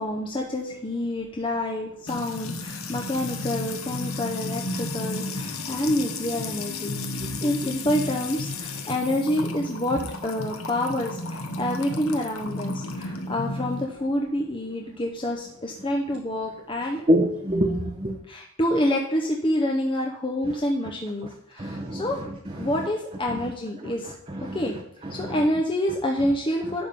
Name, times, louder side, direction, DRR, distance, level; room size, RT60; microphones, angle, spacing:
voice 1, 0.0-17.1 18.3-22.2 22.6-24.1 24.5-24.7 25.1-26.9, left 1 dB, 25° left, 0 dB, 0.8 m, -27 dB
Music / Water tap faucet / Trickle dribble, 2.1-13.8, left 2 dB, 85° left, 1.1 m, -33 dB
voice 2, 17.1-18.2 21.6-22.1 22.6-22.7 24.3-24.6 25.2-25.3, equal, 30° right, 0 dB, 0.9 m, -24 dB
11.0 x 3.7 x 6.8 m, 0.76 s
head